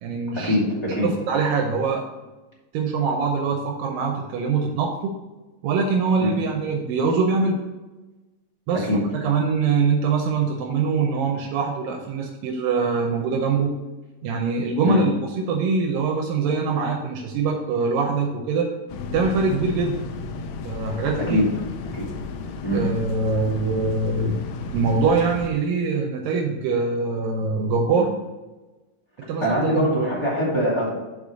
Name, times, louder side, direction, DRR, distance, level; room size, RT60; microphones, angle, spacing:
voice 1, 0.0-0.6 1.0-2.0 2.7-5.1 5.6-7.6 8.7-8.9 9.1-13.7 14.2-18.7 19.1-20.1 20.6-21.4 22.7-24.4 24.7-28.1 29.3-30.1, right 4 dB, 85° right, 1 dB, 2.4 m, -23 dB
sound 1, 18.9-25.5, left 4 dB, 90° left, 1.6 m, -34 dB
voice 2, 29.4-30.9, left 1 dB, 10° left, -7 dB, 1.9 m, -22 dB
5.3 x 5.0 x 6.2 m, 1.2 s
omnidirectional pair, 3.9 m